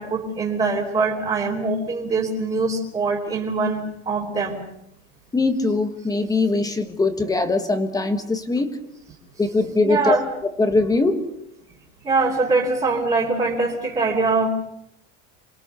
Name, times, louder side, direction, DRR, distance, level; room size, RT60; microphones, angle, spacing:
voice 1, 0.0-4.6 9.8-10.2 12.0-14.5, right 3 dB, 15° right, -4 dB, 3.2 m, -23 dB
voice 2, 5.3-8.8 9.4-10.2 10.4-11.3, left 3 dB, 10° left, 8 dB, 1.5 m, -21 dB
28.0 x 22.0 x 6.9 m, 0.79 s
cardioid pair, 170°, 41 cm